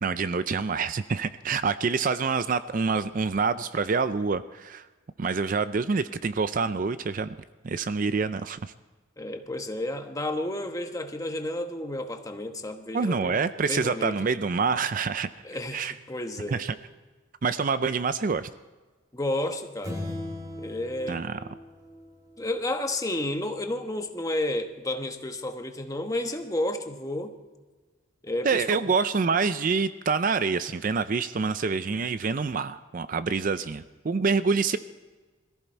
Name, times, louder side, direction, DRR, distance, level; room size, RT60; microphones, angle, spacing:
voice 1, 0.0-4.9 5.2-7.3 7.6-8.7 12.9-15.3 15.7-15.9 16.5-16.7 17.4-18.5 21.1-21.4 28.4-34.8, right 5 dB, 40° right, 13 dB, 0.4 m, -26 dB
voice 2, 9.2-13.4 13.7-14.1 15.4-16.6 19.1-20.0 20.6-21.2 22.4-27.3 28.2-28.9, left 1 dB, 15° left, 5 dB, 1.1 m, -31 dB
sound 1, 19.8-22.5, left 1 dB, 15° right, 2.0 m, -38 dB
21.5 x 14.5 x 4.5 m, 1.3 s
head